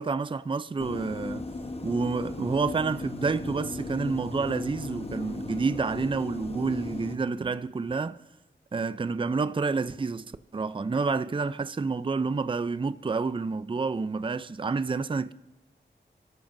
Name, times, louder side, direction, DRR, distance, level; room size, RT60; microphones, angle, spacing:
voice 1, 0.0-1.4 1.8-8.2 8.7-15.3, right 4 dB, 25° right, 0.4 m, -29 dB
sound 1, 0.8-7.2, left 2 dB, 35° left, 1.0 m, -37 dB
29.0 x 13.5 x 2.6 m
cardioid pair, 55°, 19 cm